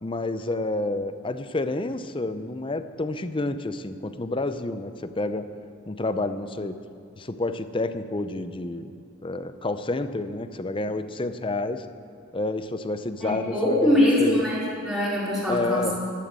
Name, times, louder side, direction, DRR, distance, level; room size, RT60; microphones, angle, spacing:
voice 1, 0.0-5.5 5.9-6.8 7.2-8.9 9.2-11.8 12.3-14.4 15.5-16.0, left 2 dB, 25° left, 11 dB, 0.6 m, -29 dB
voice 2, 13.2-16.0, left 1 dB, ahead, -8 dB, 4.5 m, -23 dB
12.0 x 11.5 x 7.6 m, 2.5 s
head